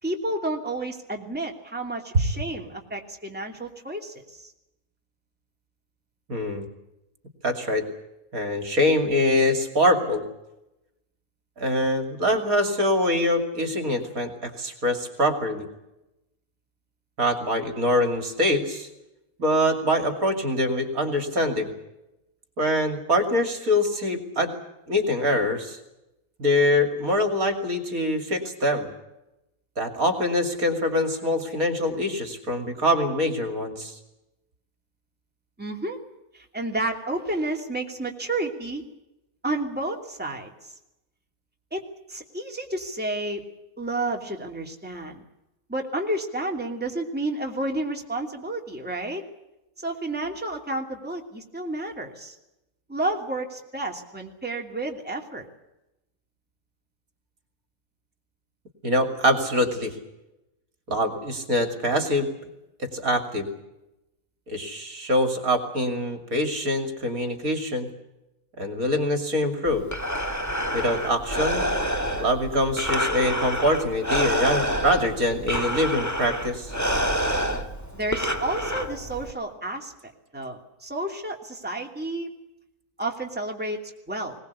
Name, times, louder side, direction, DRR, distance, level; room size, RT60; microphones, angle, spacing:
voice 1, 0.0-4.5 35.6-36.0 36.3-38.8 39.4-40.7 41.7-43.4 43.8-45.2 45.7-49.2 49.8-52.4 52.9-55.5 77.9-82.3 83.0-84.3, right 2 dB, 5° right, 1 dB, 2.8 m, -31 dB
voice 2, 6.3-6.7 7.4-7.8 8.3-10.2 11.6-15.7 17.2-18.9 19.4-21.7 22.6-24.5 24.9-25.8 26.4-28.9 29.8-33.9 58.8-60.0 60.9-62.3 62.8-63.5 64.5-67.9 68.6-69.8 70.7-71.6 72.2-76.7, left 1 dB, 60° right, 6 dB, 3.1 m, -24 dB
Breathing, 69.7-79.3, equal, 10° left, 1.7 m, -28 dB
21.5 x 20.0 x 8.3 m, 0.92 s
omnidirectional pair, 1.7 m